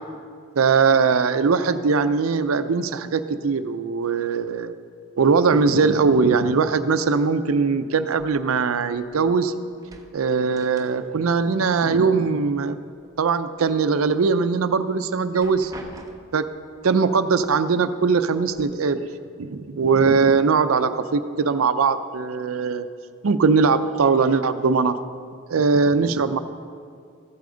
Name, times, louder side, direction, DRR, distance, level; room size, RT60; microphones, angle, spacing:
voice 1, 0.6-4.7 5.2-9.5 10.1-12.8 13.2-15.7 16.3-16.5 16.8-19.1 19.4-22.9 23.2-25.0 25.5-26.4, right 5 dB, 90° right, 11 dB, 0.5 m, -20 dB
sound 1, 9.7-11.3 11.6-12.6 13.0-13.8 14.3-14.4 15.1-16.5 17.5-17.6 18.0-18.6, right 2 dB, 15° right, 0.6 m, -46 dB
14.0 x 8.3 x 3.9 m, 2.2 s
head